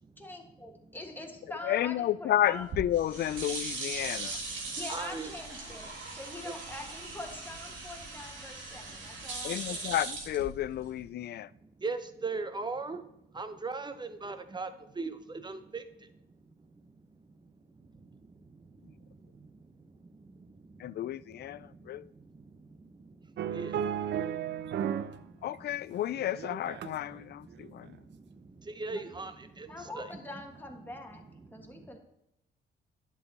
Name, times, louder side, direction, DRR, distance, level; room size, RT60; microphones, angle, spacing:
voice 1, 0.2-2.6 4.8-9.9 29.7-31.2 31.5-32.0, left 2 dB, 10° left, 2 dB, 1.5 m, -44 dB
voice 2, 1.6-4.4 9.4-11.5 20.8-22.1 25.4-28.0, left 12 dB, 55° left, 19 dB, 0.4 m, -31 dB
sound 1, 2.5-11.0, right 3 dB, 85° right, 2.8 m, -40 dB
voice 3, 4.6-5.3 6.1-6.5 8.5-9.5 11.3-26.0 26.8-30.2 31.1-32.0, right 3 dB, 20° right, 10 dB, 0.9 m, -43 dB
sound 2, 23.4-25.2 25.5-27.1 27.6-27.8, right 9 dB, 65° right, 0.6 m, -34 dB
11.0 x 6.5 x 4.1 m, 0.85 s
cardioid pair, 90°, 20 cm